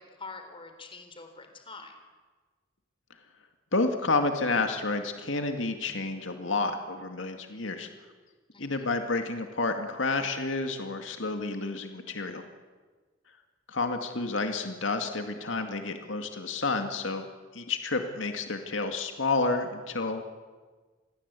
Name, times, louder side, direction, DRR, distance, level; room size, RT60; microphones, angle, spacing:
voice 1, 0.0-2.0 8.5-8.9, left 3 dB, 30° left, 6 dB, 3.8 m, -45 dB
voice 2, 3.7-7.9 8.6-12.4 13.7-17.2 17.5-20.2, left 3 dB, 80° left, 5 dB, 2.2 m, -30 dB
28.5 x 21.0 x 8.3 m, 1.4 s
head